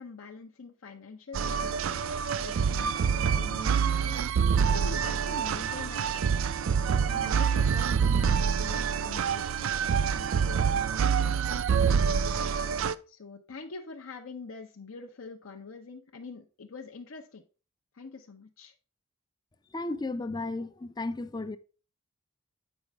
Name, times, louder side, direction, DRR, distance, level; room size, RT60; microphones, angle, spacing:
voice 1, 0.0-6.5 7.1-12.3 13.1-17.4 17.9-18.7, left 4 dB, 75° left, 0.7 m, -45 dB
sound 1, 1.3-12.9, right 6 dB, 70° right, 0.4 m, -26 dB
voice 2, 19.7-21.6, left 2 dB, 20° left, 0.4 m, -34 dB
8.1 x 5.4 x 3.3 m
head